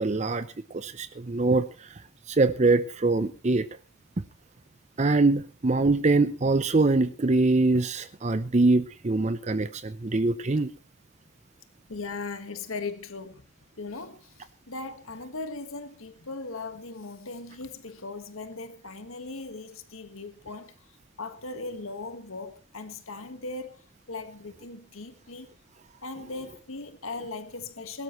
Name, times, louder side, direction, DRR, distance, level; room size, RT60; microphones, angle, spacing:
voice 1, 0.0-2.0 2.3-3.7 5.0-10.7, right 3 dB, 35° right, 0.6 m, -24 dB
voice 2, 11.9-13.5 13.8-20.9 21.2-25.5 26.0-28.0, left 3 dB, 80° left, 1.5 m, -38 dB
22.0 x 12.5 x 3.1 m
head